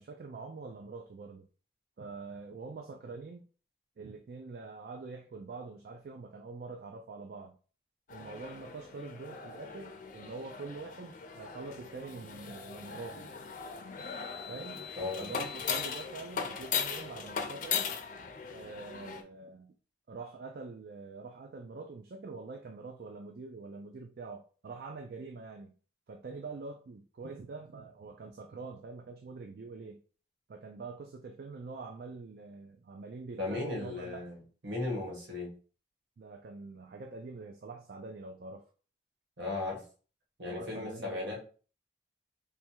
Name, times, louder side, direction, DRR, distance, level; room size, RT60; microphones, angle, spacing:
voice 1, 0.0-1.5 2.0-3.5 4.0-7.6 8.1-13.3 14.5-14.9 15.2-17.9 18.5-19.7 20.1-25.7 26.1-30.0 30.5-34.2 36.2-38.7 40.5-41.4, right 3 dB, 55° right, 0.4 m, -45 dB
sound 1, 8.1-19.2, left 6 dB, 45° left, 0.5 m, -39 dB
voice 2, 33.4-34.3 34.6-35.5 39.4-39.8 40.4-41.4, left 2 dB, 90° right, 1.6 m, -36 dB
3.4 x 2.2 x 4.4 m
head